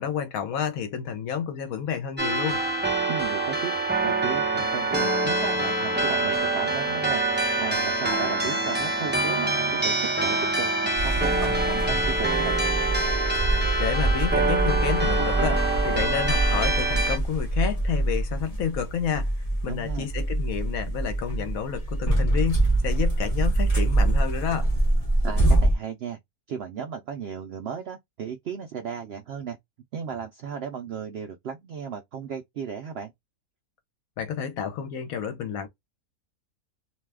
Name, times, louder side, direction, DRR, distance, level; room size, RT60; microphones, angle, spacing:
voice 1, 0.0-2.6 13.8-19.3 19.6-24.7 34.2-35.7, left 8 dB, 70° left, 1.1 m, -30 dB
sound 1, 2.2-17.2, right 2 dB, 10° right, 0.5 m, -25 dB
voice 2, 3.1-3.7 4.0-7.2 7.6-12.6 19.7-20.1 25.2-26.2 26.5-29.6 29.9-33.1, right 7 dB, 75° right, 0.6 m, -35 dB
sound 2, 11.0-25.8, right 2 dB, 25° left, 1.1 m, -25 dB
2.7 x 2.2 x 3.3 m
omnidirectional pair, 1.6 m